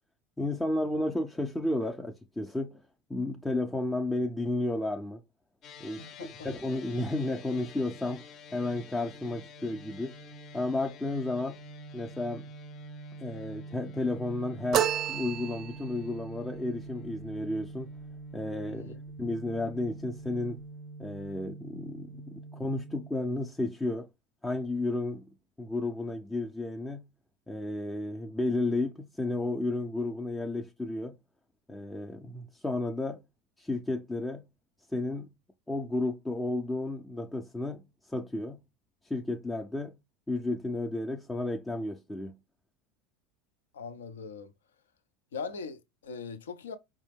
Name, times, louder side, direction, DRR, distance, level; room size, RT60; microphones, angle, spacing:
voice 1, 0.4-2.8 3.1-5.2 5.8-6.1 6.4-8.3 8.5-10.2 10.5-11.6 11.9-12.5 13.2-17.9 18.3-18.9 19.2-20.6 21.0-24.1 24.4-25.3 25.6-27.0 27.5-31.2 31.7-33.2 33.6-34.4 34.9-35.3 35.7-38.6 39.0-40.0 40.3-42.4, left 2 dB, 10° left, 0.5 m, -32 dB
sound 1, 5.6-23.1, right 2 dB, 40° left, 0.7 m, -46 dB
voice 2, 6.0-6.5 18.7-19.0 43.7-44.5 45.3-46.8, left 5 dB, 80° left, 0.6 m, -41 dB
sound 2, 14.7-16.0, right 10 dB, 45° right, 0.4 m, -29 dB
4.8 x 2.2 x 3.4 m
hypercardioid pair, 80°, 0 cm